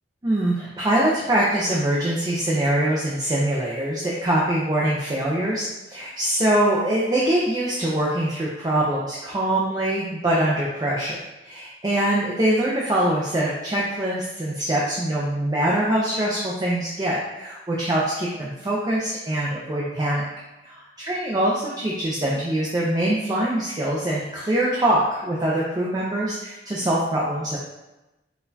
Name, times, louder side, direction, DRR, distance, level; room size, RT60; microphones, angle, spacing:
voice 1, 0.2-11.1 11.4-20.3 20.6-27.6, right 1 dB, 20° right, -5 dB, 0.4 m, -23 dB
3.9 x 2.2 x 2.6 m, 1.0 s
head